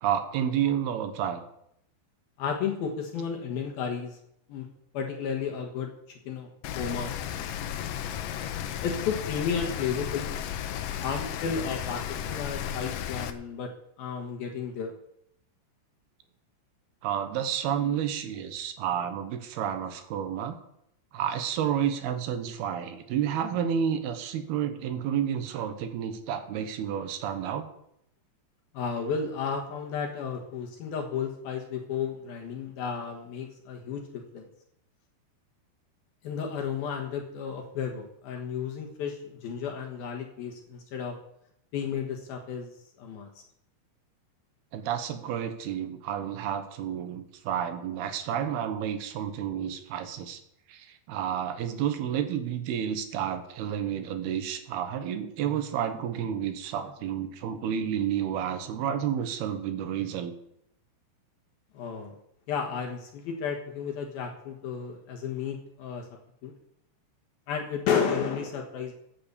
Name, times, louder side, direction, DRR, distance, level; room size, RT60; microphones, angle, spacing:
voice 1, 0.0-1.4 17.0-20.6 21.1-27.6 44.7-50.4 50.7-60.3, right 9 dB, 70° right, 9 dB, 2.9 m, -30 dB
voice 2, 2.4-4.2 4.5-4.7 4.9-6.5 6.8-7.1 8.8-10.3 11.0-13.7 14.0-14.9 28.7-34.5 36.2-41.2 41.7-42.7 43.0-43.3 61.7-62.1 62.5-66.1 66.4-66.5 67.5-68.9, left 6 dB, 65° left, 2 dB, 2.9 m, -32 dB
Rain, 6.6-13.3, left 10 dB, 80° left, 2.0 m, -34 dB
15.5 x 8.7 x 6.9 m, 0.75 s
omnidirectional pair, 5.2 m